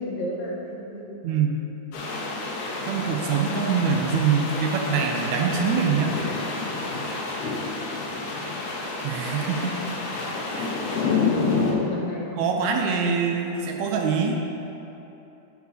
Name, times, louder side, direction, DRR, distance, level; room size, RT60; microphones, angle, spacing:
voice 1, 0.0-1.0 11.2-13.1, left 2 dB, 70° left, -4 dB, 2.6 m, -33 dB
voice 2, 1.2-1.6 2.9-6.2 9.0-9.8 10.5-10.7 11.1-11.3 12.4-14.4, right 6 dB, 80° right, 2 dB, 1.8 m, -24 dB
sound 1, 1.9-11.7, left 3 dB, 90° left, 2.5 m, -29 dB
9.0 x 4.7 x 5.5 m, 3.0 s
omnidirectional pair, 3.5 m